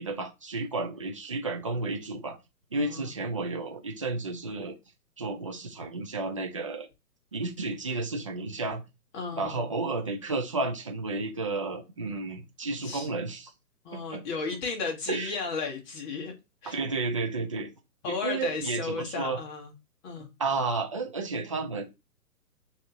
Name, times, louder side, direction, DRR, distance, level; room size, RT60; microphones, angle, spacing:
voice 1, 0.0-2.4 2.7-4.8 5.2-6.9 7.3-8.8 9.4-13.5 13.9-14.2 15.1-15.3 16.7-17.7 18.1-19.4 20.4-21.8, right 3 dB, 20° right, 0.4 m, -32 dB
voice 2, 2.7-3.1 9.1-9.7 12.8-13.1 13.8-16.4 16.6-16.8 18.0-19.7 20.0-20.3, left 4 dB, 30° left, 1.3 m, -34 dB
6.2 x 2.7 x 2.8 m
figure-of-eight pair, 130°, 47 cm